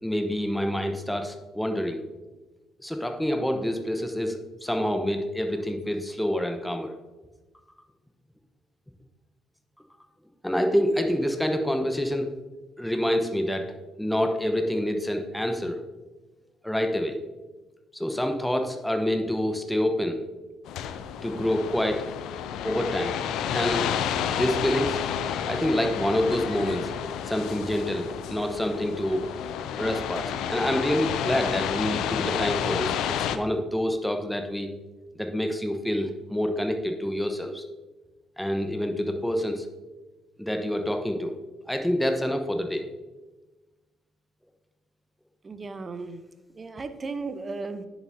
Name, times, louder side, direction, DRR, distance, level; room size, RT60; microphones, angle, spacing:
voice 1, 0.0-2.0 2.8-6.9 10.4-12.3 12.8-15.8 16.6-17.2 17.9-20.2 21.2-22.1 22.6-23.2 23.5-23.9 24.2-25.0 25.5-26.9 27.2-29.2 29.8-34.7 35.1-37.6 38.4-39.7 40.4-41.4 41.7-42.9, equal, 5° left, 5 dB, 1.0 m, -27 dB
sound 1, 20.7-33.4, left 9 dB, 70° left, 0.5 m, -30 dB
voice 2, 45.4-46.2 46.5-47.9, right 3 dB, 35° right, 11 dB, 0.8 m, -35 dB
10.5 x 7.3 x 2.8 m, 1.2 s
hypercardioid pair, 50°, 0 cm